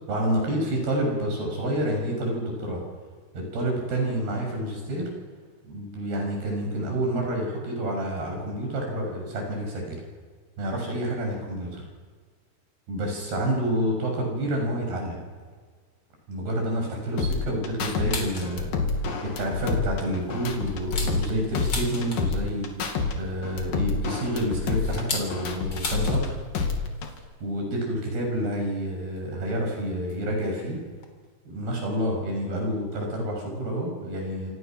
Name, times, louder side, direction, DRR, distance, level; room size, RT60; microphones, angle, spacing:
voice 1, 0.1-2.8 3.3-5.1 5.6-10.0 10.6-11.8 12.9-15.2 16.3-18.8 19.4-26.3 27.4-30.8 31.5-34.5, right 1 dB, 70° right, 1 dB, 8.6 m, -28 dB
sound 1, 17.2-18.1 18.4-21.3 21.5-23.1 23.4-26.3 26.5-27.2, left 4 dB, 60° left, 3.9 m, -28 dB
sound 2, 17.9-18.6 19.0-19.1 19.5-19.7 20.2-22.5 23.7-26.2 26.5-26.6 26.9-27.2 28.2-28.3 29.2-29.3 30.1-30.3 30.6-30.7 30.9-31.1, left 3 dB, 30° left, 3.9 m, -36 dB
27.5 x 26.5 x 6.2 m, 1.5 s
omnidirectional pair, 4.7 m